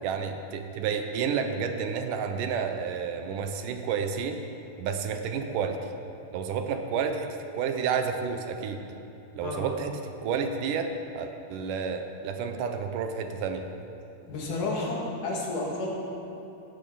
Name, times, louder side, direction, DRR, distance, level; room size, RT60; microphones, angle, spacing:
voice 1, 0.0-4.4 4.8-5.8 6.3-8.8 9.4-13.7, right 6 dB, 75° right, 6 dB, 2.3 m, -30 dB
voice 2, 14.3-16.0, left 2 dB, 65° left, -3 dB, 3.7 m, -31 dB
17.0 x 10.5 x 5.7 m, 2.9 s
omnidirectional pair, 3.9 m